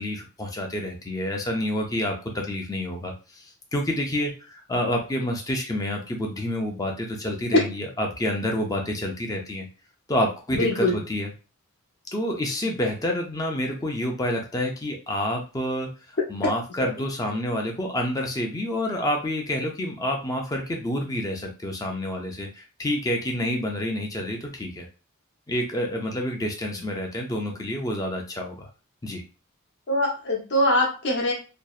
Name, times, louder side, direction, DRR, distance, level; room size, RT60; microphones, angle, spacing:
voice 1, 0.0-9.7 10.1-11.3 12.1-15.9 16.3-24.9 25.5-28.7 29.0-29.2, left 1 dB, 15° left, 1 dB, 0.4 m, -28 dB
voice 2, 10.5-11.0 29.9-31.3, left 1 dB, 55° left, -2 dB, 0.7 m, -23 dB
2.6 x 2.0 x 2.3 m, 0.33 s
head